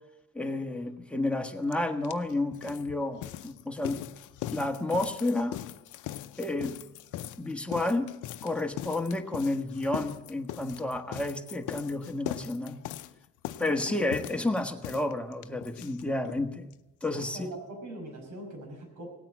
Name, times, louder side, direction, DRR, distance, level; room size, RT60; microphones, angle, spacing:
voice 1, 0.3-4.0 4.5-5.6 6.4-6.8 7.4-8.1 8.4-12.8 13.6-16.7 17.0-17.5, left 2 dB, 5° left, 3 dB, 1.4 m, -31 dB
sound 1, 1.7-1.8 2.0-16.4 16.7-16.8 17.0-17.1 17.4-17.5, left 13 dB, 85° left, 0.6 m, -40 dB
voice 2, 13.6-13.9 14.2-14.3 17.1-19.1, right 1 dB, 75° right, 2 dB, 5.5 m, -42 dB
18.0 x 9.0 x 7.5 m, 1.0 s
cardioid pair, 90°, 30 cm